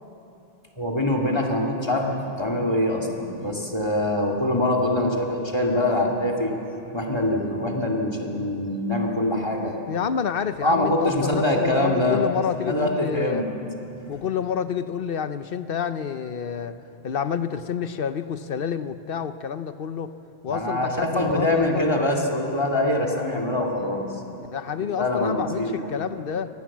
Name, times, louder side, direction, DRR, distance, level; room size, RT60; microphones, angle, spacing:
voice 1, 0.8-6.6 6.9-9.7 10.6-12.2 12.6-13.5 14.0-14.1 20.5-24.0 24.8-25.8, left 1 dB, 25° left, 1 dB, 2.4 m, -24 dB
voice 2, 9.9-13.5 14.1-16.8 17.0-20.1 20.4-21.9 24.5-26.5, left 7 dB, 60° left, 11 dB, 0.9 m, -28 dB
25.0 x 18.0 x 7.3 m, 2.9 s
omnidirectional pair, 1.1 m